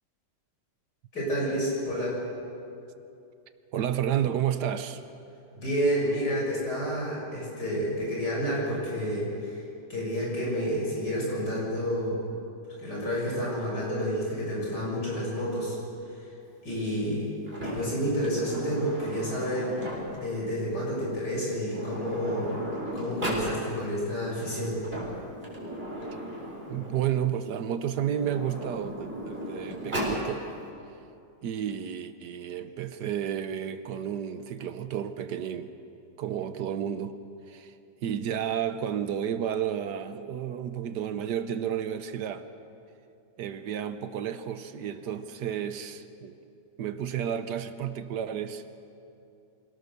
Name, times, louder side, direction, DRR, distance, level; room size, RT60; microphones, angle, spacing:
voice 1, 1.1-2.2 5.5-9.6 9.9-12.2 12.8-15.8 16.6-17.3 17.6-22.6 22.9-24.8, equal, 70° left, -4 dB, 7.4 m, -30 dB
voice 2, 3.7-5.0 26.7-30.4 31.4-35.7 36.2-37.2 37.5-37.7 38.0-42.4 43.4-46.4 46.8-48.6, right 9 dB, 75° right, 11 dB, 1.4 m, -31 dB
Sliding door, 17.5-20.3 21.3-21.4 21.6-23.5 24.6-27.2 27.9-30.2, equal, 30° right, 4.5 m, -36 dB
25.5 x 18.0 x 6.7 m, 2.6 s
omnidirectional pair, 1.9 m